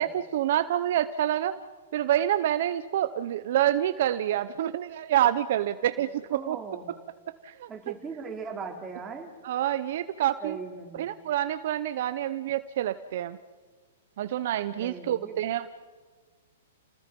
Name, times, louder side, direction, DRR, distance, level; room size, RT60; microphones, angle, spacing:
voice 1, 0.0-1.6 1.9-6.6 7.4-7.7 9.4-10.6 11.0-13.4 14.2-15.7, right 12 dB, 60° right, 11 dB, 0.8 m, -27 dB
voice 2, 6.0-6.9 7.7-9.3 10.4-11.1 14.8-15.4, right 5 dB, 15° right, 0 dB, 3.7 m, -39 dB
30.0 x 19.5 x 5.4 m, 1.4 s
hypercardioid pair, 145°, 0 cm